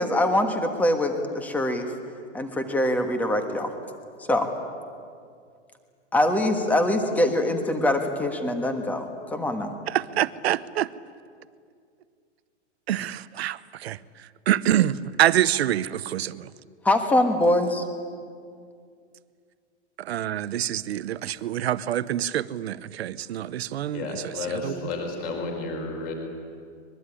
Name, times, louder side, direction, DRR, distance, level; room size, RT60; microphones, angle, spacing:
voice 1, 0.0-1.9 2.3-3.7 4.3-4.5 6.1-9.7 16.8-17.8, left 1 dB, 5° left, 6 dB, 1.4 m, -23 dB
voice 2, 9.9-10.9 12.9-14.0 14.5-16.5 20.0-24.7, right 12 dB, 60° right, 17 dB, 0.9 m, -26 dB
voice 3, 23.9-26.1, left 3 dB, 25° left, 3 dB, 5.1 m, -32 dB
24.0 x 22.0 x 10.0 m, 2.2 s
hypercardioid pair, 170°, 36 cm